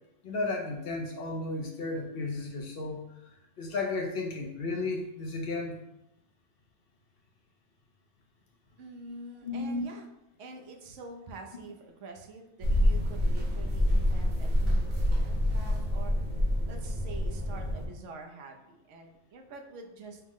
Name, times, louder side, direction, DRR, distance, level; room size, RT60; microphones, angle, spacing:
voice 1, 0.2-3.0 3.6-5.7 9.4-9.8, left 3 dB, 60° left, 1 dB, 0.7 m, -33 dB
voice 2, 8.8-10.1 10.4-16.3 16.7-20.2, right 3 dB, 80° right, 3 dB, 1.0 m, -46 dB
sound 1, 12.6-17.9, left 1 dB, 45° right, 0.9 m, -27 dB
5.5 x 2.0 x 3.6 m, 0.86 s
omnidirectional pair, 1.3 m